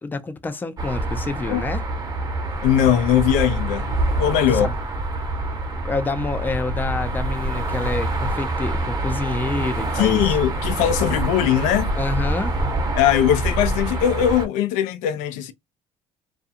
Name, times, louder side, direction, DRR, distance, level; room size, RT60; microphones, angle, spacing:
voice 1, 0.0-1.8 4.5-4.7 5.8-10.4 11.9-12.5, left 3 dB, 15° left, 0.4 m, -28 dB
sound 1, 0.8-14.5, right 1 dB, 30° right, 0.9 m, -26 dB
voice 2, 2.6-4.7 9.9-12.0 13.0-15.5, left 10 dB, 85° left, 0.5 m, -20 dB
2.5 x 2.3 x 2.7 m
cardioid pair, 105°, 12 cm